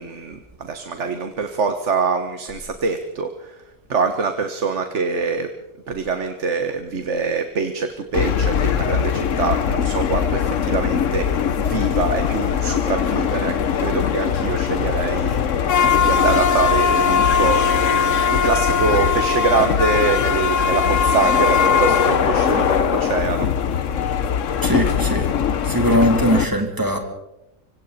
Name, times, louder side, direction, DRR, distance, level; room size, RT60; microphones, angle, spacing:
voice 1, 0.0-3.6 3.9-5.5 5.9-11.3 11.6-23.5, right 4 dB, 55° right, 7 dB, 1.5 m, -24 dB
sound 1, 8.1-26.4, left 7 dB, 60° left, 1.2 m, -20 dB
sound 2, 12.9-21.6, equal, 30° left, 3.2 m, -41 dB
voice 2, 24.6-25.3 25.6-27.0, equal, 15° right, 3 dB, 3.2 m, -20 dB
25.5 x 25.0 x 4.2 m, 0.92 s
omnidirectional pair, 1.5 m